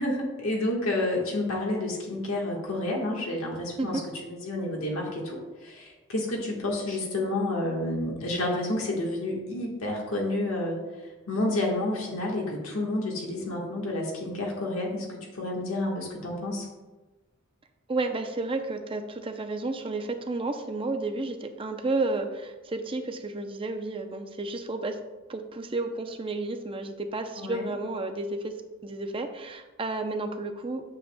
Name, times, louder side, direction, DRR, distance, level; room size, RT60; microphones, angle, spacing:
voice 1, 0.0-16.7 27.4-27.7, left 1 dB, 75° left, -2 dB, 1.4 m, -30 dB
voice 2, 17.9-25.0 25.3-28.6 28.8-30.8, right 2 dB, 25° right, 6 dB, 0.5 m, -31 dB
9.2 x 7.0 x 2.2 m, 1.2 s
head